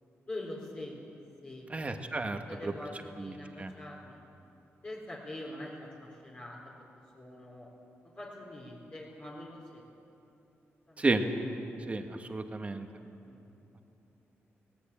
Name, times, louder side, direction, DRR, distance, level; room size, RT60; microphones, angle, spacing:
voice 1, 0.3-1.0 1.4-4.2 4.8-6.6 7.1-7.7 8.2-9.8 10.9-11.1 13.2-13.4, left 1 dB, 30° left, -5 dB, 4.0 m, -44 dB
voice 2, 1.7-2.7 3.2-3.7 11.0-11.2 11.9-12.9, right 3 dB, 30° right, 5 dB, 1.8 m, -32 dB
20.0 x 18.5 x 8.7 m, 2.9 s
cardioid pair, 95°, 5 cm